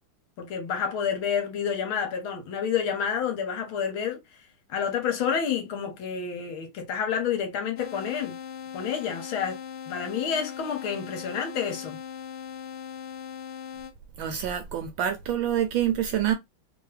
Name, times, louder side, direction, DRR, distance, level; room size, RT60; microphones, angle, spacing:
voice 1, 0.4-4.2 4.7-8.3 8.7-9.6 9.9-12.0, left 7 dB, 75° left, 1.8 m, -29 dB
sound 1, 7.8-13.9, left 8 dB, 50° left, 0.8 m, -39 dB
voice 2, 14.2-16.3, right 10 dB, 75° right, 1.3 m, -26 dB
3.5 x 2.9 x 3.2 m
omnidirectional pair, 2.3 m